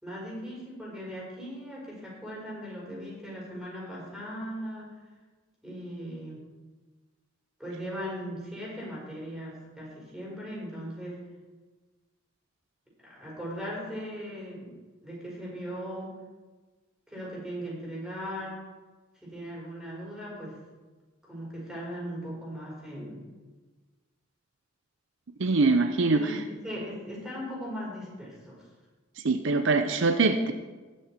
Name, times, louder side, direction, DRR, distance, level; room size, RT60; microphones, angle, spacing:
voice 1, 0.0-4.9 5.6-6.4 7.6-11.2 13.0-14.7 15.0-16.1 17.1-18.6 19.2-20.6 21.2-23.2 26.1-28.6, equal, 5° right, -5 dB, 4.4 m, -38 dB
voice 2, 25.4-26.3 29.2-30.5, right 3 dB, 65° right, 7 dB, 0.7 m, -23 dB
19.5 x 6.5 x 4.4 m, 1.3 s
head